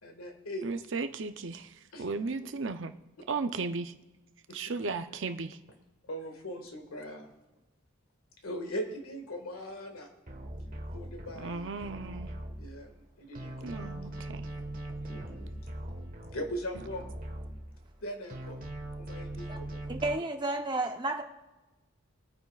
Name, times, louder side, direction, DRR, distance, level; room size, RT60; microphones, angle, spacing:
voice 1, 0.0-0.7 1.9-2.0 4.5-5.0 6.1-7.3 8.4-10.1 10.9-11.7 12.6-14.0 15.0-15.5 16.3-17.0 18.0-18.6 19.0-19.8, equal, 80° left, 4 dB, 1.9 m, -40 dB
voice 2, 0.6-2.9 3.3-3.9 4.5-5.6 11.4-12.3 13.6-14.5, right 4 dB, 60° right, 8 dB, 0.6 m, -35 dB
sound 1, 10.3-13.0 13.3-18.0 18.3-20.1, right 1 dB, 40° right, 1.4 m, -41 dB
voice 3, 19.9-21.2, right 2 dB, 20° right, 4 dB, 0.8 m, -31 dB
22.5 x 9.2 x 2.4 m, 1.1 s
head